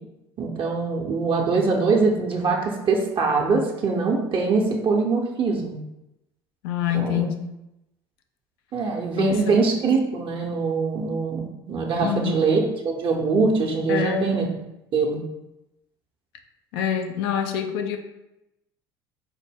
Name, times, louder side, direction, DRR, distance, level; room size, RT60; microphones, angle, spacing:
voice 1, 0.4-5.7 6.9-7.3 8.7-14.4 14.9-15.2, right 4 dB, 40° right, 1 dB, 0.7 m, -23 dB
voice 2, 6.6-7.4 9.1-9.6 12.0-12.4 13.9-14.3 16.7-18.0, left 9 dB, 70° left, 6 dB, 0.5 m, -26 dB
4.4 x 2.1 x 3.4 m, 0.90 s
hypercardioid pair, 70°, 13 cm